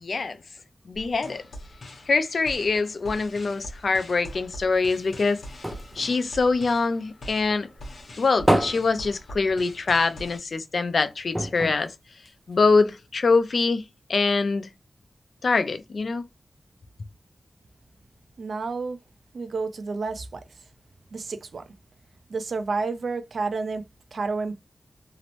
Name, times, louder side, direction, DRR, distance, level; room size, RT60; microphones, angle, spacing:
voice 1, 0.0-0.4 0.9-1.4 2.1-5.4 6.0-7.7 8.2-11.9 12.5-13.8 14.1-14.7 15.4-16.2, left 4 dB, 65° left, 0.4 m, -24 dB
sound 1, 0.9-10.4, equal, 85° left, 0.9 m, -43 dB
sound 2, 4.7-7.4 7.7-10.0 10.3-10.4 10.7-10.9 11.3-12.8 13.5-13.6, right 1 dB, 10° right, 0.4 m, -29 dB
voice 2, 18.4-19.0 19.3-20.4 21.1-21.6 22.3-24.6, right 4 dB, 75° right, 0.4 m, -30 dB
2.8 x 2.0 x 2.9 m
wide cardioid pair, 120°, 0 cm